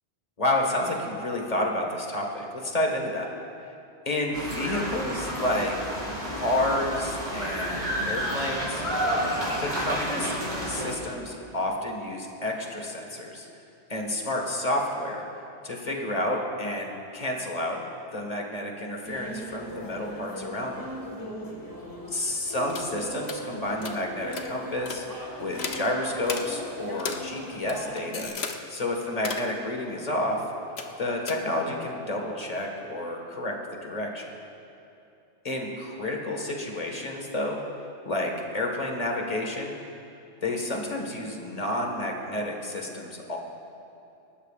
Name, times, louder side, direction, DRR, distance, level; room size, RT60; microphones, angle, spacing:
voice 1, 0.4-3.3 4.1-5.9 6.3-8.8 9.6-10.3 10.6-13.5 13.9-15.2 15.6-17.8 18.1-20.8 22.1-30.4 31.0-33.5 33.8-34.3 35.4-37.6 38.1-39.7 40.4-43.4, left 1 dB, 35° left, 1 dB, 1.7 m, -30 dB
sound 1, 4.3-10.9, equal, 50° right, 3.8 m, -30 dB
sound 2, 19.0-28.3, equal, 20° left, 1.7 m, -39 dB
sound 3, 22.7-22.9 23.2-23.4 23.8-24.0 24.3-24.5 24.8-25.0 25.5-25.8 26.2-26.4 27.0-27.2 27.5-28.6 29.1-29.5 30.8-31.0 31.3-31.4, left 5 dB, 65° left, 1.1 m, -34 dB
27.5 x 13.0 x 2.5 m, 2.7 s
omnidirectional pair, 1.2 m